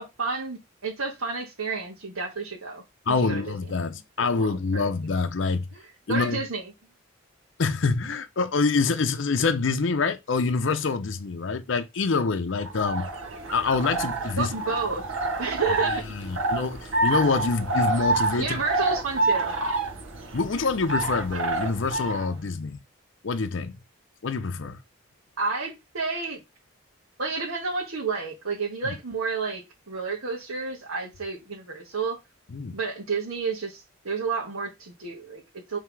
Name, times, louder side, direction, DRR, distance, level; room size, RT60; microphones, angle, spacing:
voice 1, 0.0-4.8 5.7-6.7 14.4-15.0 15.4-16.0 18.4-19.5 25.4-26.4 27.2-32.2 32.7-35.8, right 4 dB, 85° right, 1.6 m, -31 dB
voice 2, 3.1-5.7 6.1-6.4 7.6-13.1 13.5-14.5 16.1-18.6 20.3-22.8 23.2-23.8 24.2-24.8 32.5-32.8, left 4 dB, 65° left, 0.6 m, -26 dB
sound 1, 12.6-22.3, right 2 dB, 70° right, 1.5 m, -28 dB
5.6 x 3.5 x 4.7 m
head